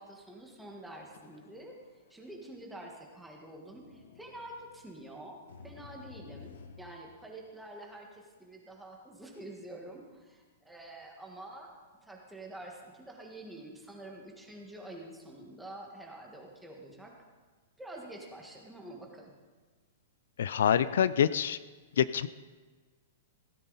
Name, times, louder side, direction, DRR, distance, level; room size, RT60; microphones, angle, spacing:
voice 1, 0.0-1.8 2.1-17.1 17.8-19.3, right 1 dB, 5° right, 0 dB, 1.6 m, -47 dB
sound 1, 0.9-1.8 2.1-2.2 3.7-6.9, left 6 dB, 85° left, 1.4 m, -53 dB
voice 2, 20.4-21.6 22.0-22.3, left 9 dB, 70° left, 15 dB, 0.4 m, -26 dB
16.5 x 13.5 x 4.0 m, 1.4 s
supercardioid pair, 175°, 0 cm